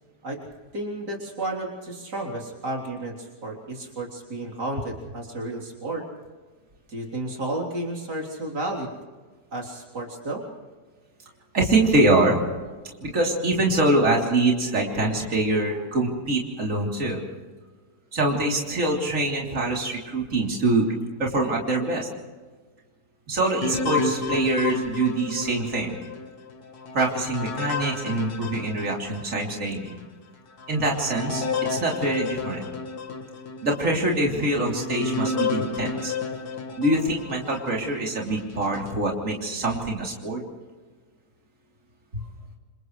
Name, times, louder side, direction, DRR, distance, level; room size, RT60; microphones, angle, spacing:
voice 1, 0.7-6.1 6.9-8.9 9.5-10.4, right 2 dB, 75° right, -1 dB, 4.2 m, -32 dB
voice 2, 11.5-12.4 13.0-17.2 18.1-20.9 21.2-22.1 23.3-26.0 26.9-30.0 30.7-31.4 31.7-32.7 33.6-36.1 36.8-40.4 42.1-42.2, right 2 dB, 50° right, -2 dB, 3.8 m, -24 dB
sound 1, 23.6-29.4 29.9-30.0 30.6-37.8 38.4-39.0, left 4 dB, 65° left, 2.1 m, -31 dB
29.0 x 27.5 x 3.3 m, 1.3 s
omnidirectional pair, 1.8 m